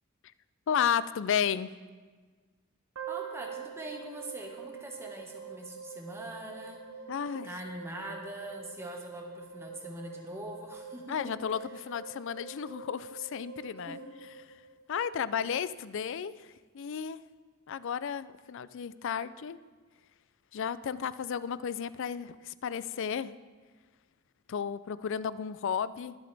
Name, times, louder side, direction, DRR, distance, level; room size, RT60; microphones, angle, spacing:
voice 1, 0.7-1.7 7.1-7.5 11.1-14.0 14.9-17.2 17.7-19.6 20.5-23.4 24.5-26.2, left 7 dB, 65° left, 16 dB, 0.4 m, -33 dB
sound 1, 2.9-15.2, right 6 dB, 90° right, 1.2 m, -45 dB
voice 2, 3.1-6.8 7.4-11.3 13.8-14.0, right 1 dB, 15° right, 1 dB, 1.5 m, -43 dB
21.0 x 7.8 x 3.4 m, 1.4 s
head